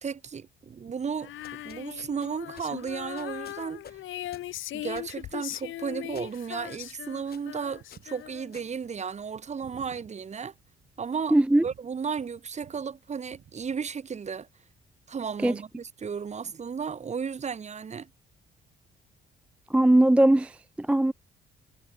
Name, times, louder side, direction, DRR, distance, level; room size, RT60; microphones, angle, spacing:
voice 1, 0.0-4.0 4.7-10.5 11.0-11.4 11.6-14.5 15.1-18.1, right 6 dB, 35° right, 1.0 m, -34 dB
sound 1, 0.7-11.1 11.6-12.9 13.2-14.1, right 11 dB, 70° right, 4.3 m, -58 dB
Female singing, 1.2-8.7, left 14 dB, 80° left, 1.9 m, -39 dB
sound 2, 1.4-9.6, left 7 dB, 50° left, 4.2 m, -54 dB
voice 2, 11.3-11.6 15.4-15.5 19.7-21.1, right 1 dB, 5° right, 0.3 m, -20 dB
cardioid pair, 90°, 20 cm